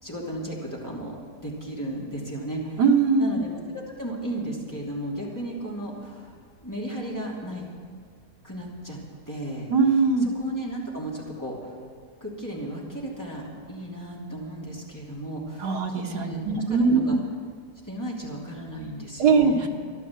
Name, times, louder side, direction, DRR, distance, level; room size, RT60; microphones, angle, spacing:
voice 1, 0.0-1.2 1.4-2.8 3.2-6.3 6.6-7.7 8.4-9.0 9.3-9.7 10.2-11.7 12.2-17.2 17.8-19.7, right 1 dB, 10° left, -4 dB, 2.9 m, -35 dB
voice 2, 2.8-3.4 9.7-10.3 15.6-17.2 19.2-19.5, right 5 dB, 85° right, 2 dB, 1.9 m, -21 dB
13.5 x 12.0 x 7.5 m, 2.1 s
omnidirectional pair, 1.7 m